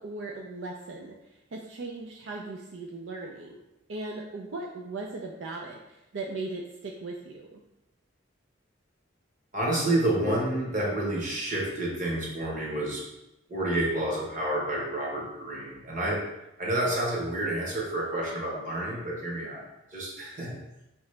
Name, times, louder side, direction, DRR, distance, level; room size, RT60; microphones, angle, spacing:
voice 1, 0.0-3.6 3.9-7.6, right 3 dB, 70° right, 0 dB, 0.4 m, -38 dB
voice 2, 9.5-13.0 13.5-16.2 16.6-19.7 19.9-20.6, right 1 dB, 40° right, -3 dB, 1.2 m, -29 dB
4.7 x 3.0 x 3.2 m, 0.92 s
head